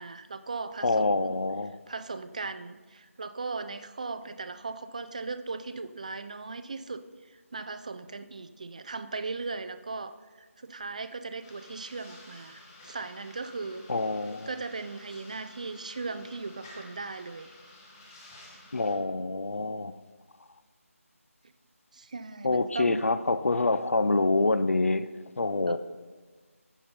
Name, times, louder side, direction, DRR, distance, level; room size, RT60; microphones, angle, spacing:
voice 1, 0.0-1.4 1.9-13.8 14.5-17.5 21.9-23.2 25.7-25.8, right 3 dB, 30° right, 11 dB, 0.4 m, -38 dB
voice 2, 0.8-1.8 13.9-14.5 18.7-20.0 22.4-25.1 25.4-25.8, left 3 dB, 65° left, 13 dB, 0.6 m, -26 dB
sound 1, 11.4-18.9, left 2 dB, 15° left, 1.0 m, -52 dB
14.5 x 5.3 x 4.3 m, 1.4 s
figure-of-eight pair, 165°, 8 cm